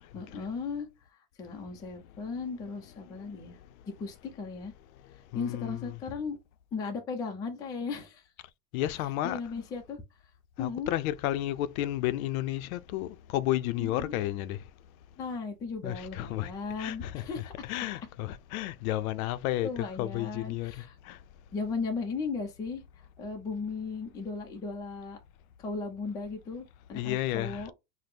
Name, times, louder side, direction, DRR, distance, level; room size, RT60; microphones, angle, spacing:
voice 1, 0.1-3.6 4.0-4.7 5.3-6.4 6.7-8.3 9.2-10.0 10.6-10.9 13.8-14.2 15.2-17.7 19.6-21.0 21.5-25.2 25.6-27.7, left 4 dB, 10° left, 0.3 m, -36 dB
voice 2, 3.1-3.4 5.3-5.9 8.7-9.4 10.6-14.6 15.8-16.5 16.8-17.2 17.6-21.2 26.9-27.7, left 14 dB, 65° left, 0.5 m, -32 dB
4.2 x 2.1 x 3.2 m
supercardioid pair, 130°, 46 cm